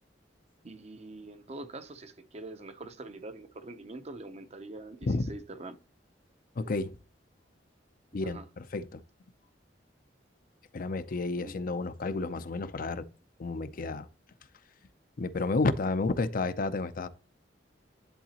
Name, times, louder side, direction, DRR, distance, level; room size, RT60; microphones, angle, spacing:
voice 1, 0.6-5.8 8.2-8.5 11.3-11.6, right 2 dB, 35° right, 0.7 m, -44 dB
voice 2, 6.6-7.0 8.1-9.0 10.7-13.1 13.4-14.1 15.2-17.1, left 3 dB, 50° left, 0.5 m, -31 dB
10.5 x 4.0 x 2.9 m
head